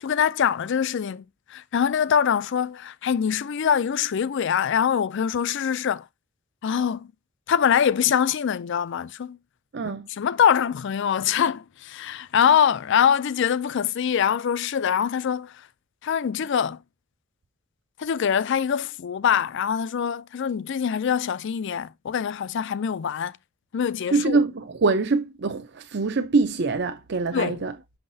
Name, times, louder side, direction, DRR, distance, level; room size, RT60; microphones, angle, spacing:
voice 1, 0.0-1.2 1.5-6.1 6.6-7.1 7.5-9.4 9.8-15.5 16.0-16.8 18.0-23.4 23.7-24.4 27.3-27.6, left 8 dB, 60° left, 0.4 m, -24 dB
voice 2, 9.7-10.1 24.1-27.7, right 3 dB, 55° right, 0.6 m, -24 dB
6.2 x 5.8 x 2.7 m
head